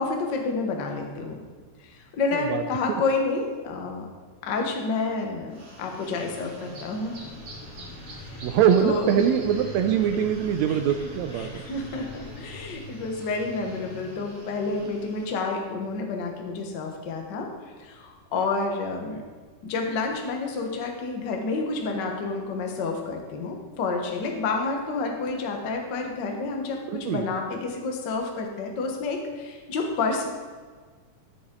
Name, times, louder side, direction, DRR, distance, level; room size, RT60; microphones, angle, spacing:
voice 1, 0.0-1.4 1.8-4.0 4.4-7.2 8.2-8.4 8.8-9.2 10.7-10.8 11.3-19.2 19.6-30.3, left 3 dB, 55° left, 2 dB, 1.2 m, -29 dB
voice 2, 2.3-2.6 8.4-11.6 26.9-27.3, right 8 dB, 80° right, 7 dB, 1.6 m, -23 dB
sound 1, 5.5-15.4, right 2 dB, 50° right, 2.7 m, -43 dB
sound 2, 7.2-12.7, left 3 dB, 75° left, 2.6 m, -44 dB
13.0 x 7.0 x 3.8 m, 1.5 s
omnidirectional pair, 3.6 m